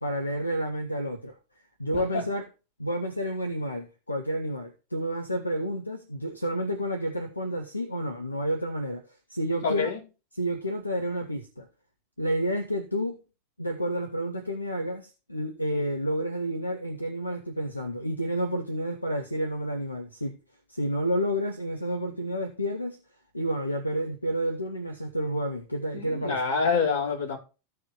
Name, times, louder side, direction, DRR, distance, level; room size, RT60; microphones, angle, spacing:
voice 1, 0.0-1.3 1.8-2.4 2.8-9.0 9.3-9.9 10.4-11.7 12.2-13.2 13.6-20.4 20.7-23.0 23.3-26.4, equal, 85° left, 1.2 m, -30 dB
voice 2, 1.9-2.2 9.6-10.0 25.9-27.4, left 5 dB, 60° left, 5.1 m, -27 dB
14.5 x 4.9 x 5.0 m
figure-of-eight pair, 90°, 0 cm